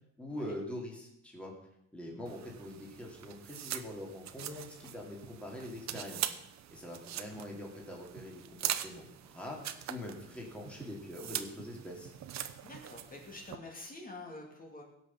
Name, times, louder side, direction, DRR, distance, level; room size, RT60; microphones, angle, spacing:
voice 1, 0.2-1.5 1.9-6.4 6.7-9.6 9.9-12.1, left 1 dB, 5° left, -2 dB, 2.5 m, -44 dB
sound 1, 2.3-13.6, right 11 dB, 65° right, 0.9 m, -42 dB
voice 2, 12.6-14.8, left 2 dB, 30° left, 0 dB, 2.6 m, -47 dB
16.5 x 6.3 x 7.4 m, 0.80 s
cardioid pair, 145°, 29 cm